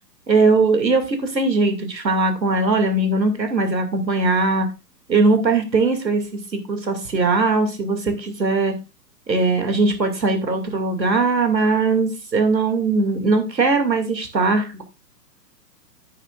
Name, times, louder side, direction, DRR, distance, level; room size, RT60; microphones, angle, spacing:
voice 1, 0.3-4.7 5.1-6.2 6.5-8.7 9.3-14.8, right 3 dB, 90° right, 6 dB, 2.5 m, -20 dB
10.0 x 10.0 x 2.4 m, 0.27 s
figure-of-eight pair, 120°, 50 cm